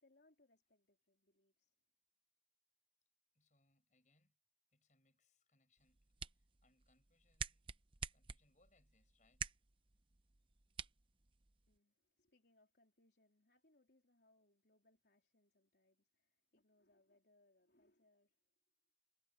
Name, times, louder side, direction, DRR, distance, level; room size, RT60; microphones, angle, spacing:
voice 1, 0.0-1.8 11.7-18.5, left 2 dB, 75° left, 3.5 m, -75 dB
voice 2, 3.3-4.4 4.7-7.7 8.1-9.6, left 2 dB, 45° left, 7.9 m, -78 dB
sound 1, 5.8-11.8, right 6 dB, 30° right, 0.8 m, -50 dB
head